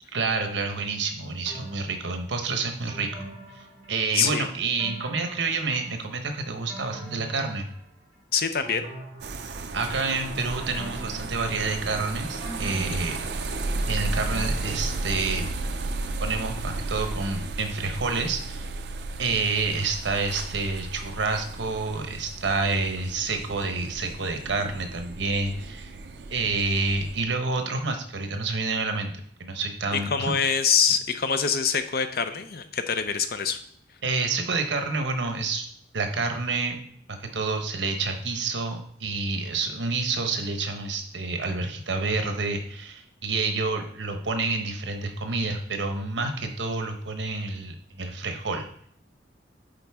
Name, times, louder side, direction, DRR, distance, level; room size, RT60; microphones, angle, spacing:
voice 1, 0.1-3.3 3.5-3.6 3.9-7.7 9.7-13.2 13.9-15.5 16.2-18.7 19.2-25.9 26.3-29.1 29.4-30.3 34.0-35.7 35.9-36.8 37.1-48.6, right 3 dB, 85° right, 5 dB, 1.0 m, -28 dB
sound 1, 1.5-2.3 2.9-4.3 4.8-6.1 6.5-8.1 8.6-9.9 10.5-11.9 12.4-15.7 16.0-16.1, right 2 dB, 35° right, 2.8 m, -43 dB
voice 2, 4.1-4.5 8.3-8.9 29.9-33.6, left 6 dB, 55° left, 9 dB, 0.6 m, -25 dB
sound 2, 9.2-27.2, right 2 dB, 65° right, 0.5 m, -34 dB
8.9 x 4.1 x 3.5 m, 0.64 s
head